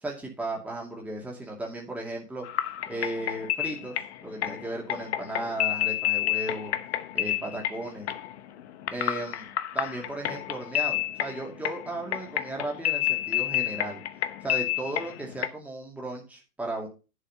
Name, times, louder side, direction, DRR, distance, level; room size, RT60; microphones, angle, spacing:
voice 1, 0.0-2.5 2.9-6.7 7.1-8.1 8.9-9.5 9.7-14.0 14.4-16.9, right 2 dB, 5° right, -1 dB, 2.5 m, -35 dB
sound 1, 2.4-15.5, left 14 dB, 45° left, 1.0 m, -30 dB
11.0 x 5.5 x 5.6 m, 0.31 s
figure-of-eight pair, 110°, 47 cm